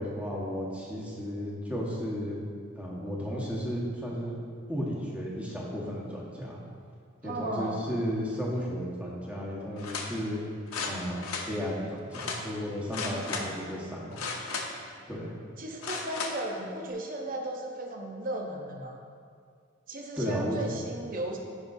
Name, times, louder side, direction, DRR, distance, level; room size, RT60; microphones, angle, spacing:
voice 1, 0.0-2.4 2.8-4.3 4.7-6.6 7.2-10.4 10.9-14.1 15.1-15.3 20.2-20.8, equal, 5° right, -5 dB, 1.3 m, -34 dB
voice 2, 7.2-7.8 13.1-13.5 15.6-19.0 19.9-21.4, right 1 dB, 40° right, 1 dB, 0.8 m, -36 dB
sound 1, 9.8-10.1 10.7-11.5 12.1-12.4 12.9-13.5 14.1-14.8 15.8-16.4 16.9-17.0, left 4 dB, 90° left, 1.0 m, -35 dB
15.0 x 5.3 x 2.7 m, 2.2 s
head